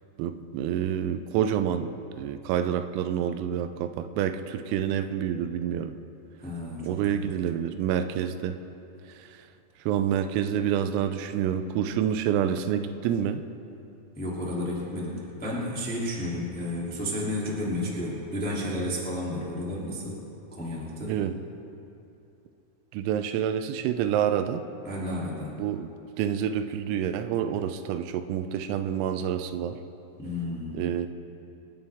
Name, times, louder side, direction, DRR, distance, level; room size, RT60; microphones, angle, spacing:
voice 1, 0.2-6.0 6.8-8.6 9.1-9.4 9.9-13.4 21.1-21.3 22.9-24.6 25.6-25.9 26.2-29.8 30.7-31.1, right 9 dB, 90° right, 9 dB, 3.4 m, -28 dB
voice 2, 6.4-7.3 14.1-20.2 20.5-21.1 24.8-25.5 30.2-30.8, left 1 dB, 10° left, -6 dB, 0.4 m, -32 dB
26.0 x 11.5 x 3.6 m, 2.8 s
omnidirectional pair, 5.9 m